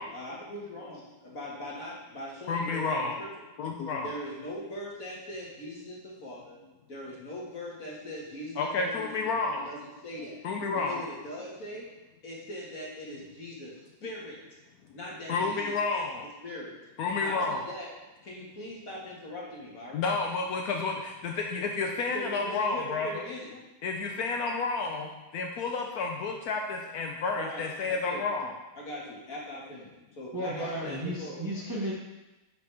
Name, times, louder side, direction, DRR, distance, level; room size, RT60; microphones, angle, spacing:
voice 1, 0.1-3.4 4.0-6.6 6.9-10.4 10.7-11.9 12.2-13.7 14.0-14.6 14.9-16.1 16.4-16.8 17.2-17.9 18.2-20.0 22.1-23.5 27.4-28.2 28.8-31.4, left 1 dB, 45° left, -4 dB, 1.8 m, -41 dB
voice 2, 2.5-3.2 3.6-4.1 8.6-9.7 10.4-11.0 15.3-16.3 17.0-17.6 19.9-23.2 23.8-28.5, left 4 dB, 80° left, 2 dB, 0.8 m, -30 dB
voice 3, 30.3-31.9, equal, 15° right, -4 dB, 0.8 m, -33 dB
10.5 x 4.8 x 3.3 m, 1.0 s
omnidirectional pair, 2.3 m